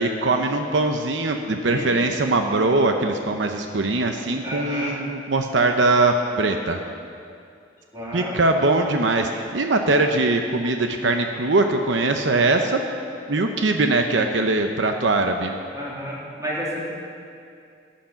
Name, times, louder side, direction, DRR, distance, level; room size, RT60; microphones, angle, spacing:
voice 1, 0.0-6.8 8.1-12.8 13.3-15.6, right 2 dB, 80° right, 4 dB, 0.8 m, -21 dB
voice 2, 1.6-2.0 4.4-4.9 7.9-8.4 15.7-16.9, equal, 20° right, -5 dB, 3.2 m, -31 dB
14.5 x 10.5 x 5.8 m, 2.4 s
head